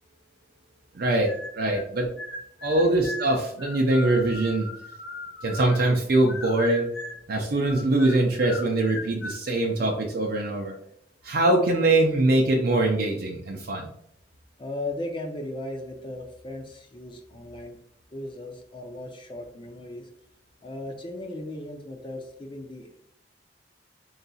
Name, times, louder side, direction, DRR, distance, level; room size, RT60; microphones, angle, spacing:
voice 1, 0.9-2.1 2.6-4.7 5.4-6.9 7.3-10.8 11.2-13.9, right 2 dB, 60° right, 0 dB, 0.5 m, -23 dB
sound 1, 1.2-1.9 2.2-6.0 6.3-7.3 7.6-9.4, left 2 dB, 90° left, 0.6 m, -38 dB
voice 2, 14.6-17.8 18.1-20.1 20.6-23.0, left 1 dB, 30° left, 2 dB, 0.5 m, -37 dB
4.0 x 3.9 x 2.3 m, 0.73 s
head